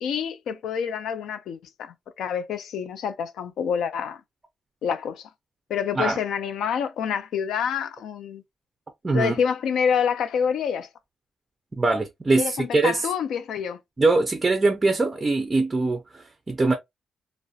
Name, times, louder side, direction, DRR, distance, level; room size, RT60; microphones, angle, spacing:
voice 1, 0.0-4.2 4.8-5.3 5.7-8.4 9.1-10.9 12.4-13.8, left 7 dB, 85° left, 0.4 m, -27 dB
voice 2, 9.0-9.3 11.7-13.1 14.0-16.7, right 3 dB, 20° right, 0.4 m, -22 dB
2.3 x 2.0 x 2.6 m
wide cardioid pair, 155°, 0 cm